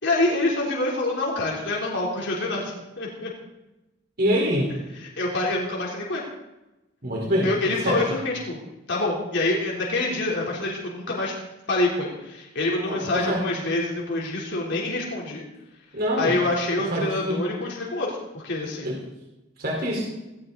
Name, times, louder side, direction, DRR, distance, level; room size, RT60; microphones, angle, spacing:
voice 1, 0.0-3.3 5.2-6.2 7.4-8.6 8.9-11.3 11.7-15.5 16.2-18.9, left 2 dB, 65° left, -3 dB, 3.6 m, -26 dB
voice 2, 4.2-4.7 7.0-8.0 12.8-13.5 15.9-16.3 16.8-17.5 18.8-19.0 19.6-20.0, equal, 55° right, -3 dB, 4.3 m, -25 dB
18.0 x 17.5 x 4.0 m, 0.99 s
head